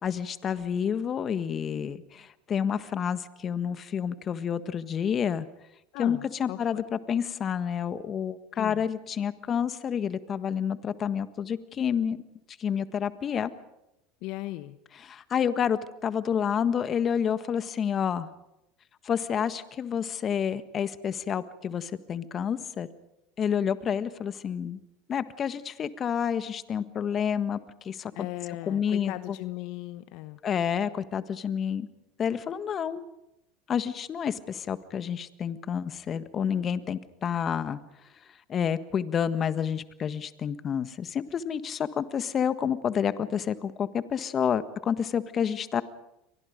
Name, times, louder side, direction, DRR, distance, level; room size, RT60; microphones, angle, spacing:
voice 1, 0.0-5.5 6.0-12.2 12.6-13.5 15.0-18.3 19.0-22.9 23.4-24.8 25.1-27.6 27.8-28.1 28.7-29.4 30.4-31.9 32.2-33.1 33.7-37.8 38.5-45.8, left 8 dB, 35° left, 12 dB, 1.5 m, -29 dB
voice 2, 5.9-6.8 8.5-8.9 14.2-14.8 28.1-30.4, left 17 dB, 60° left, 12 dB, 1.0 m, -37 dB
30.0 x 24.0 x 5.2 m, 0.87 s
hypercardioid pair, 90°, 0 cm